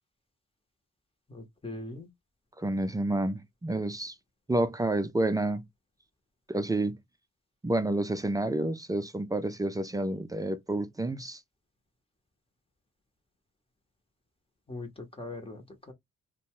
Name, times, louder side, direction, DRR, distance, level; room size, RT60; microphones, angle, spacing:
voice 1, 1.3-2.1 14.7-15.9, left 2 dB, 20° left, 0.8 m, -41 dB
voice 2, 2.6-4.1 4.5-5.6 6.5-7.0 7.6-11.4, right 2 dB, 10° right, 0.4 m, -29 dB
2.6 x 2.2 x 3.0 m
cardioid pair, 90°, 30 cm